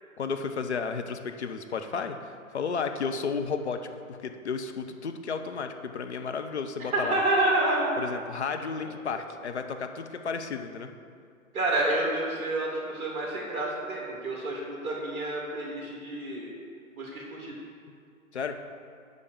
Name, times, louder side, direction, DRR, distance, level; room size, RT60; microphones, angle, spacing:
voice 1, 0.2-2.2 2.5-3.8 4.1-7.2 8.0-10.9 18.3-18.5, left 5 dB, 50° left, 6 dB, 0.8 m, -32 dB
voice 2, 6.9-8.0 11.5-16.5 17.0-17.6, right 2 dB, 15° right, -2 dB, 2.1 m, -28 dB
8.2 x 5.3 x 6.8 m, 2.2 s
figure-of-eight pair, 130°, 42 cm